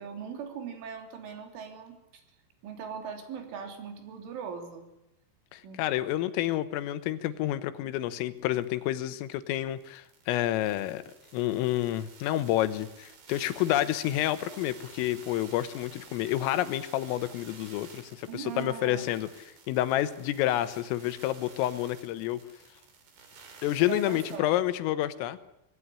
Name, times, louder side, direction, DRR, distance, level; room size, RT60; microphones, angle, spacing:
voice 1, 0.0-2.2 2.6-4.8 5.6-5.8 18.3-19.2 23.8-24.5, right 7 dB, 70° right, 4 dB, 5.4 m, -40 dB
voice 2, 5.5-11.0 11.3-19.3 19.7-22.4 23.6-25.4, left 13 dB, 90° left, 12 dB, 3.8 m, -29 dB
sound 1, 8.1-8.2 8.4-24.4, right 5 dB, 55° right, 5.4 m, -52 dB
25.5 x 18.5 x 9.9 m, 0.88 s
omnidirectional pair, 5.8 m